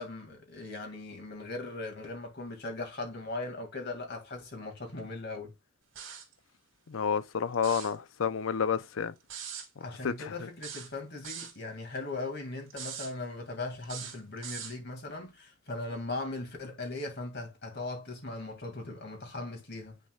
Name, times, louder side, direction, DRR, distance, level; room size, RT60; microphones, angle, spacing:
voice 1, 0.0-5.5 9.8-20.0, left 2 dB, 55° left, 2.3 m, -39 dB
sound 1, 6.0-6.3 7.5-8.0 9.3-9.7 10.6-11.6 12.7-13.1 13.8-14.8, right 8 dB, 80° right, 2.1 m, -41 dB
voice 2, 6.9-9.1 10.0-10.3, left 6 dB, 85° left, 0.6 m, -30 dB
9.7 x 4.3 x 2.4 m
head